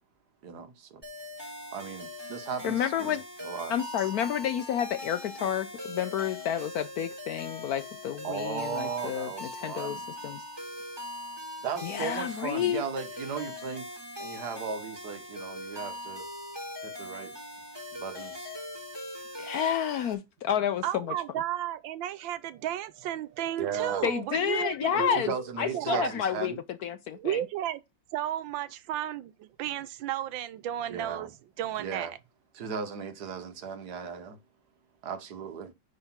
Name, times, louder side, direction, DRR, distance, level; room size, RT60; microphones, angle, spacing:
voice 1, 0.4-1.0 1.7-4.1 8.2-10.0 11.6-16.3 16.8-17.4 17.9-18.5 23.6-24.1 24.9-26.6 30.9-31.3 31.8-32.1 32.5-34.4 35.0-35.7, right 6 dB, 60° right, 1.5 m, -36 dB
sound 1, 1.0-20.1, left 1 dB, 10° right, 3.7 m, -41 dB
voice 2, 2.6-3.2 3.7-10.4 11.8-12.8 19.4-21.1 24.0-25.3 25.6-26.5 26.8-27.4, left 9 dB, 70° left, 0.9 m, -30 dB
voice 3, 20.8-25.5 25.7-26.1 27.1-27.8 28.1-31.3 31.6-32.2, right 11 dB, 90° right, 1.5 m, -33 dB
9.8 x 3.9 x 5.8 m
omnidirectional pair, 2.1 m